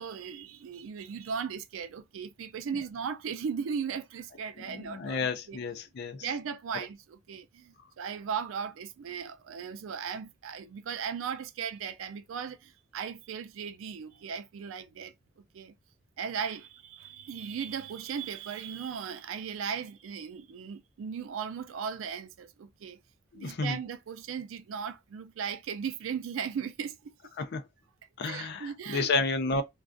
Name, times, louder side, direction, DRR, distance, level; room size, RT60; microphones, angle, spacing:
voice 1, 0.0-5.6 6.2-15.1 15.5-15.7 16.2-23.0 23.3-27.1 28.2-29.1, right 7 dB, 75° right, 0.4 m, -37 dB
voice 2, 4.6-6.3 23.3-23.8 27.4-27.6 28.2-29.6, left 3 dB, 55° left, 0.4 m, -31 dB
2.3 x 2.3 x 2.4 m
head